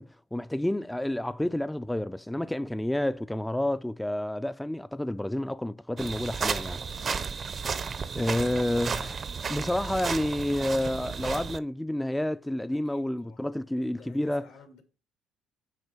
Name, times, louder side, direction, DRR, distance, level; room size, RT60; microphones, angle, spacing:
voice 1, 0.0-6.8 8.1-9.2 9.5-14.5, left 1 dB, 5° left, 0.3 m, -29 dB
sound 1, 6.0-11.6, right 5 dB, 40° right, 0.6 m, -33 dB
voice 2, 6.8-7.3 12.7-14.8, left 5 dB, 85° left, 2.2 m, -54 dB
9.7 x 3.3 x 4.4 m
supercardioid pair, 75°, 0 cm